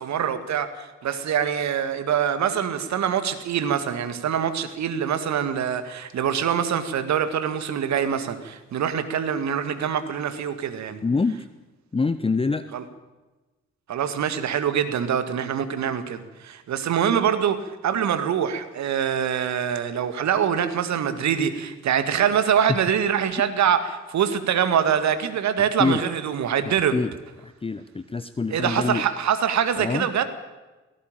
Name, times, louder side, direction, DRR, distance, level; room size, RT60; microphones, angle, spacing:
voice 1, 0.0-11.0 12.7-12.8 13.9-27.0 28.5-30.2, right 8 dB, 50° right, 10 dB, 2.0 m, -24 dB
voice 2, 11.0-11.5 11.9-12.7 25.6-26.0 26.7-27.1 27.4-29.0 29.8-30.1, left 4 dB, 15° left, 12 dB, 0.9 m, -25 dB
18.0 x 17.0 x 9.0 m, 1.1 s
figure-of-eight pair, 40°, 35 cm